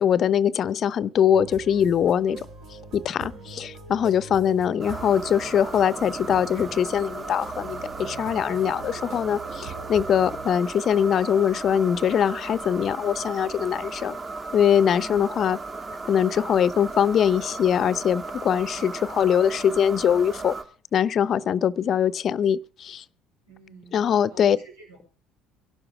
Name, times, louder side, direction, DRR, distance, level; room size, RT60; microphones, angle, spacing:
voice 1, 0.0-2.5 2.9-14.2 14.5-15.6 16.1-20.6 20.9-23.0 23.9-24.6, left 8 dB, 45° left, 0.6 m, -22 dB
sound 1, 1.3-10.5, right 4 dB, 60° right, 4.1 m, -42 dB
sound 2, 4.8-20.6, right 3 dB, 35° right, 2.0 m, -36 dB
voice 2, 23.5-25.1, right 2 dB, 90° right, 5.8 m, -49 dB
24.0 x 12.0 x 3.5 m
hypercardioid pair, 60°, 0 cm